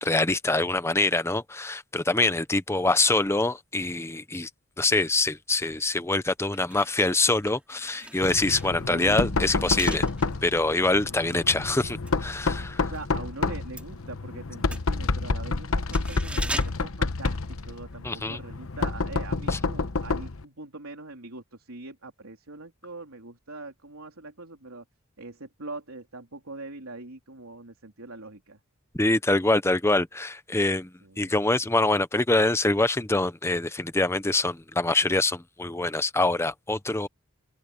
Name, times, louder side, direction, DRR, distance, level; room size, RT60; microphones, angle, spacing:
voice 1, 0.0-4.5 4.8-10.1 10.4-12.9 18.0-18.4 19.5-19.6 29.0-30.9 31.2-37.1, left 2 dB, 10° left, 0.8 m, -25 dB
sound 1, 5.9-6.0 6.4-13.1 13.3-18.0 18.3-18.4, right 1 dB, 5° right, 3.2 m, -41 dB
Knock, 8.2-20.4, left 3 dB, 80° left, 1.0 m, -29 dB
voice 2, 8.8-9.4 12.7-24.8 25.2-28.6 31.0-31.4, right 2 dB, 85° right, 3.6 m, -42 dB
head